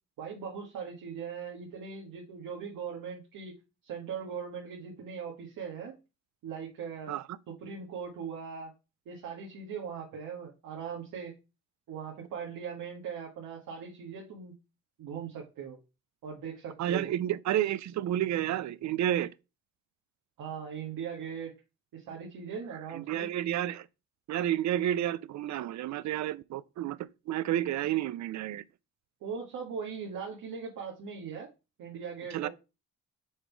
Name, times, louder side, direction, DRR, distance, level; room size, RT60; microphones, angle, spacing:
voice 1, 0.2-3.6 3.8-6.0 6.4-7.1 7.6-8.7 9.0-11.3 11.9-14.5 15.0-15.8 16.2-17.1 20.4-21.6 21.9-23.3 29.2-31.5 31.8-32.5, right 6 dB, 75° right, 1.6 m, -40 dB
voice 2, 16.8-19.3 22.9-23.9 24.3-27.0 27.3-28.6 32.3-32.5, right 12 dB, 60° right, 0.5 m, -30 dB
6.4 x 3.6 x 4.6 m
supercardioid pair, 70°, 32 cm